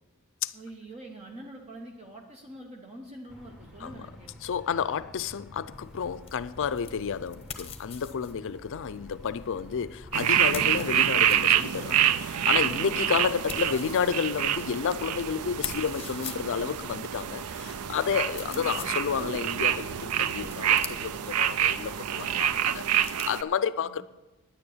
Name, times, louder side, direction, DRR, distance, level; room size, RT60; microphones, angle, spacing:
voice 1, 0.5-4.6 18.5-18.9 23.8-24.0, right 1 dB, 30° right, 1.0 m, -45 dB
sound 1, 3.3-22.6, left 1 dB, ahead, 1.4 m, -50 dB
voice 2, 4.4-24.0, left 7 dB, 60° left, 0.5 m, -31 dB
sound 2, 5.7-23.3, left 7 dB, 25° left, 1.0 m, -45 dB
sound 3, 10.1-23.4, right 10 dB, 85° right, 0.5 m, -27 dB
9.7 x 9.7 x 7.3 m
head